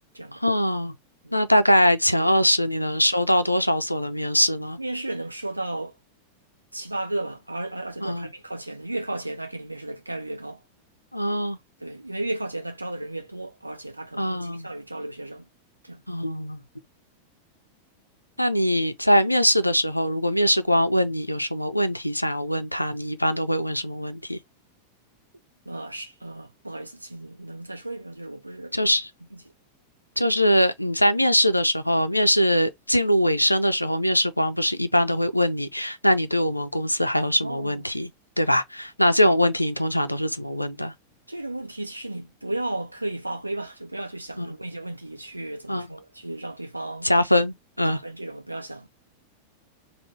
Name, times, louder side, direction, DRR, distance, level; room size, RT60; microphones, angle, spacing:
voice 1, 0.3-0.9 1.3-4.8 8.0-8.3 11.1-11.6 14.2-14.7 16.1-16.6 18.4-24.4 28.7-29.1 30.2-38.1 38.4-40.9 44.4-44.5 45.7-45.9 47.0-48.0, equal, 90° left, 0.5 m, -22 dB
voice 2, 4.8-5.9 6.7-10.6 11.8-15.5 15.8-16.0 25.7-28.9 29.3-29.4 37.4-37.8 41.3-47.1 47.9-48.9, right 1 dB, 85° right, 0.8 m, -34 dB
3.7 x 2.1 x 4.1 m
figure-of-eight pair, 90°, 0 cm